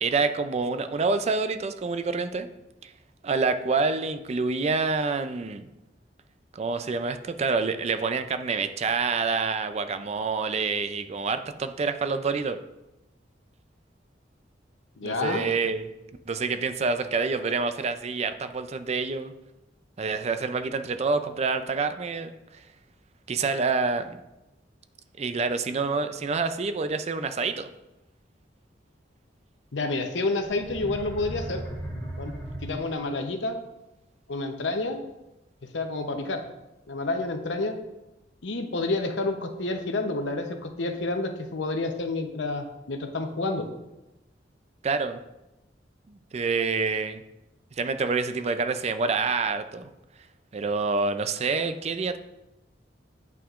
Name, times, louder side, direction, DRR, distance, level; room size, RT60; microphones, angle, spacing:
voice 1, 0.0-2.5 2.8-2.9 3.2-5.7 6.5-12.6 15.0-15.8 16.3-19.3 20.0-22.3 23.3-24.2 25.2-27.7 44.8-45.2 46.1-47.2 47.8-49.9 50.5-52.2, right 4 dB, 35° right, 10 dB, 0.4 m, -27 dB
voice 2, 15.0-15.5 29.7-31.6 32.2-32.4 32.6-33.6 34.3-35.0 35.7-36.4 36.9-37.8 38.4-43.7, left 2 dB, 80° left, 5 dB, 0.8 m, -29 dB
sound 1, 30.4-33.2, right 1 dB, 5° left, 2.2 m, -36 dB
9.2 x 5.7 x 2.5 m, 0.96 s
head